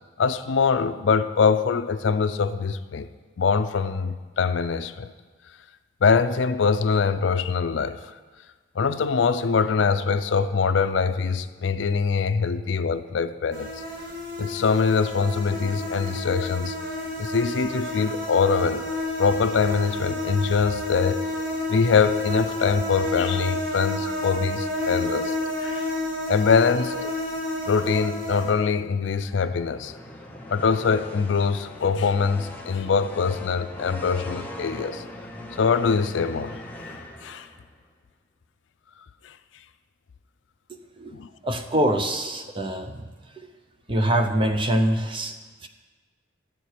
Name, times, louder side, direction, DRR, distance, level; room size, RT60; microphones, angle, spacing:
voice 1, 0.2-3.1 3.4-5.1 6.0-8.2 8.8-13.7 14.4-16.8 17.2-18.9 19.2-21.2 21.7-25.3 25.6-25.9 26.3-27.1 27.7-29.9 30.5-35.0 35.5-36.6 37.2-37.5 39.2-39.3 41.1-41.3, left 5 dB, 70° left, 12 dB, 0.4 m, -23 dB
sound 1, 13.5-28.5, left 1 dB, 75° right, 2.9 m, -30 dB
sound 2, 29.1-37.8, left 1 dB, 10° left, 0.9 m, -40 dB
voice 2, 41.4-43.0 43.3-43.5 43.9-45.7, right 1 dB, 25° right, 6 dB, 0.7 m, -24 dB
13.0 x 4.6 x 8.3 m, 1.4 s
head